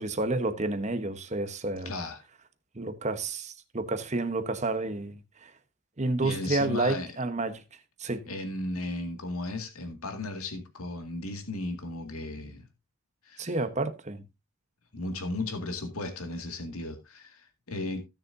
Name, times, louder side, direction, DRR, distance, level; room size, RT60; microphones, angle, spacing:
voice 1, 0.0-1.9 2.7-5.5 6.0-7.6 8.0-8.3 13.4-14.2, right 2 dB, 30° right, 1.1 m, -30 dB
voice 2, 1.8-2.2 6.2-7.1 8.3-12.6 13.2-13.5 14.9-18.0, left 2 dB, 75° left, 2.1 m, -35 dB
16.5 x 6.7 x 2.7 m
head